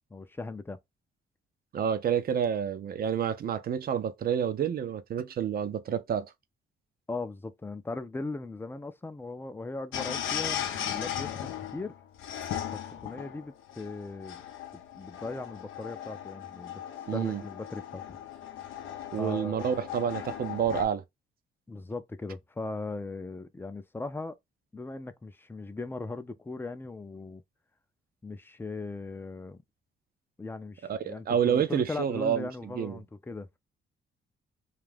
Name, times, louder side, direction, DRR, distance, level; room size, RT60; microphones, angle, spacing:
voice 1, 0.1-0.8 7.1-11.9 12.9-14.4 14.9-16.8 17.1-18.0 19.1-19.8 21.7-24.3 24.7-27.4 28.2-29.6 30.4-33.6, left 3 dB, 10° left, 0.4 m, -38 dB
voice 2, 1.7-6.3 17.1-17.4 19.1-21.0 30.8-32.5 32.8-33.0, right 8 dB, 50° right, 0.5 m, -29 dB
sound 1, 9.9-20.8, left 10 dB, 80° left, 0.6 m, -37 dB
2.5 x 2.4 x 3.3 m
cardioid pair, 90°, 20 cm